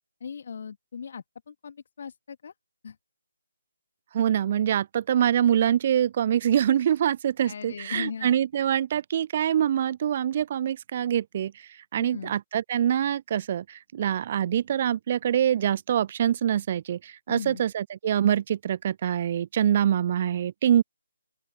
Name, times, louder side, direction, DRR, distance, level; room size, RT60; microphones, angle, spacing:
voice 1, 0.2-2.5 2.8-3.0 7.5-8.4 12.0-12.3 17.3-17.6, left 6 dB, 40° left, 2.4 m, -38 dB
voice 2, 4.1-20.8, right 10 dB, 30° right, 0.3 m, -25 dB
open air
figure-of-eight pair, 145°, 0 cm